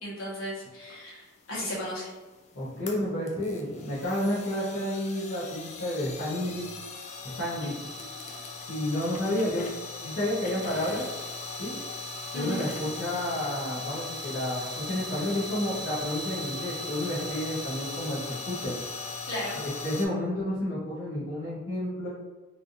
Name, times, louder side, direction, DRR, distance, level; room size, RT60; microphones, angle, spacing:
voice 1, 0.0-2.1 7.6-7.7 8.0-8.1 12.3-12.6 19.3-19.6, equal, 85° left, -7 dB, 1.3 m, -35 dB
sound 1, 1.2-20.1, left 2 dB, 35° left, 0.3 m, -39 dB
voice 2, 2.5-6.7 7.4-7.9 8.7-9.7 10.0-11.0 11.6-11.7 12.3-18.2 18.4-18.7 19.5-22.1, left 1 dB, 65° left, -10 dB, 0.9 m, -30 dB
3.3 x 2.6 x 2.6 m, 1.2 s
head